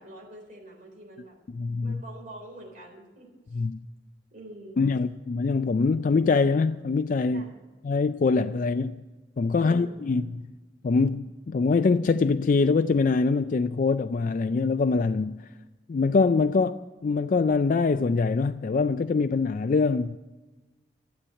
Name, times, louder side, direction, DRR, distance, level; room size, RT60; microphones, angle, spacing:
voice 1, 0.0-1.4 1.8-3.6 4.3-4.9 7.3-7.5 9.5-9.9, right 2 dB, 45° right, 4.0 m, -45 dB
voice 2, 1.5-2.0 3.5-3.8 4.8-7.5 7.8-9.0 9.4-10.5 10.8-15.4 15.9-20.2, left 4 dB, 45° left, 0.3 m, -24 dB
13.0 x 8.5 x 8.7 m
head